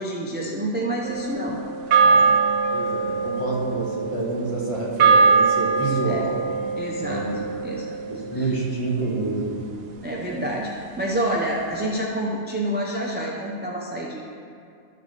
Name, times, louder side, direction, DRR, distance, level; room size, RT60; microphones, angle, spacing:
voice 1, 0.0-1.6 6.1-6.3 6.8-7.3 7.6-8.0 8.3-8.5 10.0-14.2, right 1 dB, 15° right, -3 dB, 0.4 m, -28 dB
sound 1, 1.0-9.5, right 5 dB, 60° right, 0.7 m, -22 dB
voice 2, 2.0-2.3 2.7-6.4 7.0-7.4 8.1-9.5, right 3 dB, 25° left, -4 dB, 1.4 m, -28 dB
11.5 x 6.7 x 3.3 m, 2.4 s
omnidirectional pair, 1.4 m